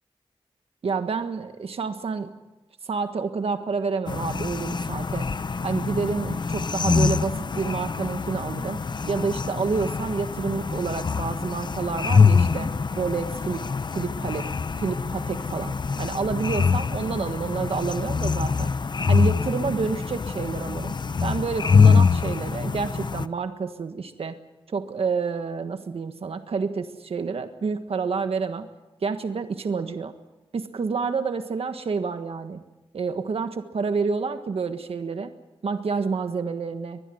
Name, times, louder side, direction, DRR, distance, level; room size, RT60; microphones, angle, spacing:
voice 1, 0.8-2.3 2.8-5.3 5.6-8.8 9.1-13.6 13.9-14.5 14.8-18.7 19.1-20.9 21.2-24.4 24.7-28.7 29.0-30.1 30.5-32.6 32.9-35.3 35.6-37.0, right 5 dB, 75° right, 8 dB, 1.5 m, -29 dB
sound 1, 4.1-23.3, left 5 dB, 50° left, 0.8 m, -24 dB
24.0 x 20.5 x 7.9 m, 1.1 s
wide cardioid pair, 110°, 10 cm